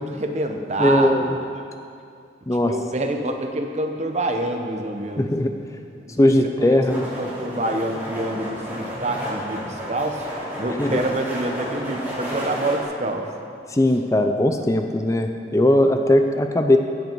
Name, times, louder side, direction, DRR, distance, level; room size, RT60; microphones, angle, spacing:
voice 1, 0.0-1.4 2.6-5.3 6.1-6.3 6.6-10.3 10.6-13.3, right 1 dB, 40° right, 4 dB, 0.9 m, -27 dB
voice 2, 0.8-1.4 2.5-2.7 5.2-5.5 6.2-7.1 10.8-11.0 13.7-16.8, left 1 dB, 20° left, 5 dB, 0.5 m, -19 dB
sound 1, 6.8-12.8, equal, 10° right, 3.0 m, -32 dB
16.5 x 8.1 x 4.6 m, 2.5 s
head